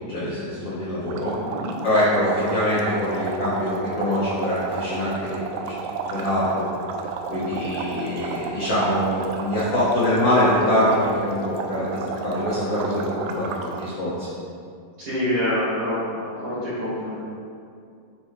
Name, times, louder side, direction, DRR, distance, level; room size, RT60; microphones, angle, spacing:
voice 1, 0.1-1.3 1.8-5.4 5.6-5.8 6.1-6.6 7.3-14.3, left 1 dB, 85° left, -10 dB, 1.3 m, -24 dB
sound 1, 1.1-13.9, right 5 dB, 80° right, 2.5 m, -32 dB
voice 2, 15.0-17.2, left 1 dB, 55° right, -12 dB, 1.7 m, -26 dB
9.2 x 4.5 x 3.2 m, 2.3 s
omnidirectional pair, 4.7 m